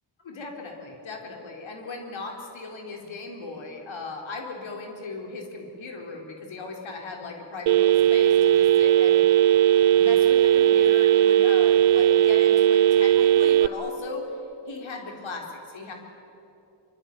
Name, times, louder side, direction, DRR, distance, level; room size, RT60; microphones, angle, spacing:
voice 1, 0.2-9.5 9.9-14.4 14.7-15.9, left 3 dB, 80° left, 2 dB, 4.1 m, -38 dB
Telephone, 7.7-13.7, right 11 dB, 85° right, 0.8 m, -18 dB
24.5 x 24.0 x 9.5 m, 2.8 s
wide cardioid pair, 110°, 46 cm